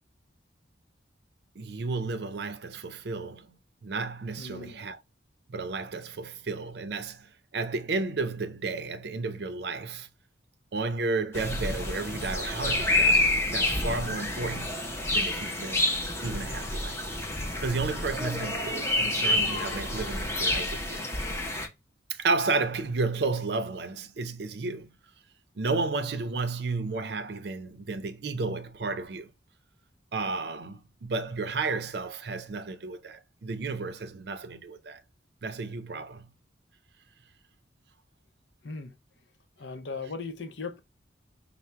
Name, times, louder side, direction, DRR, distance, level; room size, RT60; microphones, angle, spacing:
voice 1, 1.6-3.5 3.8-5.0 5.5-10.1 10.7-14.8 15.1-15.8 16.2-17.1 17.6-21.1 22.1-24.9 25.6-29.3 30.1-35.0 35.4-36.3 40.0-40.1, right 3 dB, 60° right, 0.5 m, -32 dB
voice 2, 4.4-4.9 38.6-39.0 39.6-40.8, left 4 dB, 75° left, 0.6 m, -38 dB
sound 1, 11.3-21.7, left 1 dB, 15° left, 0.6 m, -28 dB
5.5 x 2.1 x 3.3 m
head